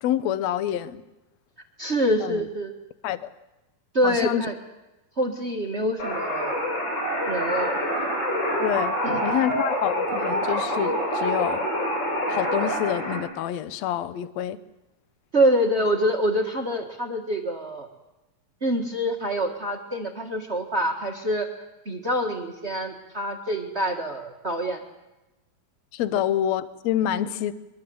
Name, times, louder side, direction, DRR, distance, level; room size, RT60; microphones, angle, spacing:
voice 1, 0.0-1.0 2.2-2.4 3.0-3.3 4.0-4.4 8.6-9.0 9.2-11.6 12.3-14.6 25.9-27.5, left 11 dB, 70° left, 14 dB, 1.6 m, -27 dB
voice 2, 1.8-2.7 3.9-4.5 5.2-6.5 7.3-7.7 8.0-8.1 9.0-9.2 15.3-17.9 18.6-21.5 21.8-24.8, equal, 60° right, 4 dB, 0.6 m, -25 dB
sound 1, 6.0-13.2, equal, 25° left, 7.0 m, -26 dB
23.5 x 22.5 x 7.8 m, 1.0 s
omnidirectional pair, 4.3 m